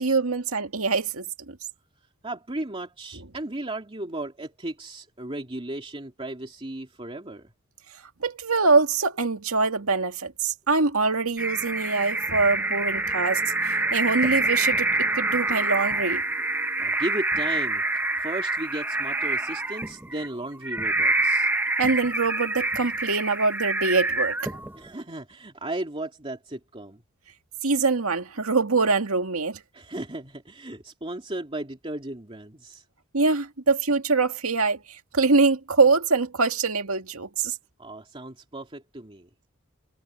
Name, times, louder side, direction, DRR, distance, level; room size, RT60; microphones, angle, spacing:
voice 1, 0.0-1.6 8.2-16.2 21.8-24.5 27.6-29.6 33.1-37.6, right 4 dB, 85° right, 2.1 m, -24 dB
voice 2, 2.2-7.5 16.8-21.5 24.7-27.0 29.7-32.8 37.8-39.3, right 1 dB, 25° right, 2.6 m, -35 dB
sound 1, 11.4-24.9, right 2 dB, 10° right, 0.8 m, -26 dB
head